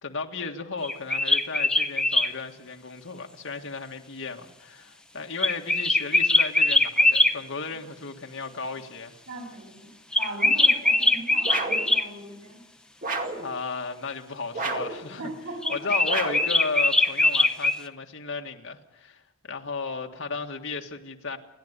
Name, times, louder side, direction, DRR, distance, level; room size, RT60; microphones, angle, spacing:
voice 1, 0.0-9.1 13.3-15.3 15.7-21.4, left 4 dB, 65° left, 1.8 m, -34 dB
sound 1, 0.8-2.3 5.4-7.3 10.1-12.1 15.6-17.8, left 2 dB, 5° left, 0.8 m, -21 dB
voice 2, 9.3-9.9 10.2-12.6 15.1-15.9, right 1 dB, 90° right, 7.4 m, -39 dB
sound 2, 11.5-11.9 13.0-13.5 14.5-15.0 16.1-16.6, right 3 dB, 40° right, 2.2 m, -30 dB
29.5 x 11.5 x 8.2 m
head